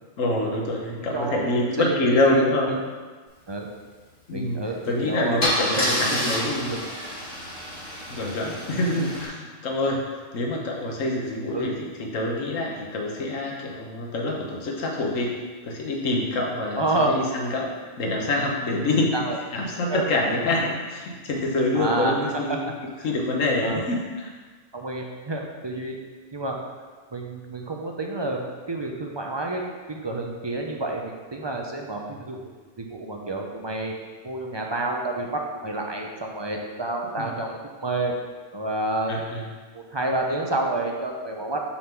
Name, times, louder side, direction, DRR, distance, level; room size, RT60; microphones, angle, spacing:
voice 1, 0.2-2.8 4.3-6.7 8.1-10.0 10.3-15.3 15.6-17.7 18.0-19.1 19.5-22.5 23.0-24.3 37.2-37.3 39.1-39.4, left 2 dB, 85° left, -1 dB, 1.4 m, -26 dB
voice 2, 1.0-1.5 1.8-2.0 2.3-2.7 3.5-3.7 4.3-6.3 6.6-6.8 11.5-11.7 16.8-17.2 19.1-19.4 19.9-20.1 20.3-20.4 21.7-22.2 22.5-22.6 23.0-23.1 23.6-23.8 24.7-26.0 26.3-26.6 27.1-29.6 29.9-32.4 32.8-33.9 34.2-38.1 38.5-39.2 39.9-41.7, right 2 dB, 35° right, 1 dB, 0.4 m, -29 dB
Car / Engine starting / Idling, 4.7-4.9 5.4-9.3, left 1 dB, 55° left, 2.1 m, -29 dB
6.3 x 3.7 x 5.8 m, 1.4 s
omnidirectional pair, 1.3 m